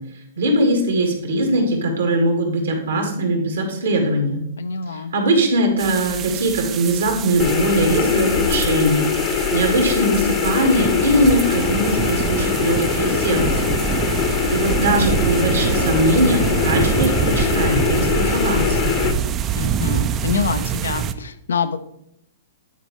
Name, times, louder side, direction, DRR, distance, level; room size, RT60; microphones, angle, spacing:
voice 1, 0.4-4.4 4.9-13.7 14.2-18.9, right 1 dB, 80° right, 2 dB, 1.8 m, -21 dB
voice 2, 4.6-5.1 13.9-14.3 19.6-21.8, left 5 dB, 80° left, 11 dB, 0.6 m, -26 dB
sound 1, 5.8-21.1, right 9 dB, 25° right, 0.4 m, -26 dB
sound 2, 7.4-19.1, left 7 dB, 45° left, 0.9 m, -22 dB
Gong, 14.6-19.9, right 6 dB, 60° right, 0.9 m, -29 dB
9.4 x 4.2 x 3.1 m, 0.77 s
hypercardioid pair, 120°, 0 cm